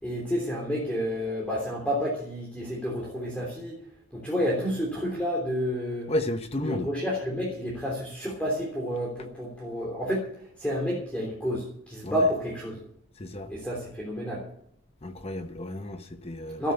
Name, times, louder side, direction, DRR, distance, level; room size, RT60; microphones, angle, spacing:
voice 1, 0.0-3.8 4.1-6.1 6.6-10.2 10.6-12.7 13.5-14.4 16.6-16.7, equal, 5° left, 3.3 m, -30 dB
voice 2, 6.1-6.9 12.0-12.1 13.2-13.5 15.0-16.6, left 1 dB, 30° left, 1.0 m, -32 dB
13.0 x 10.0 x 7.0 m
head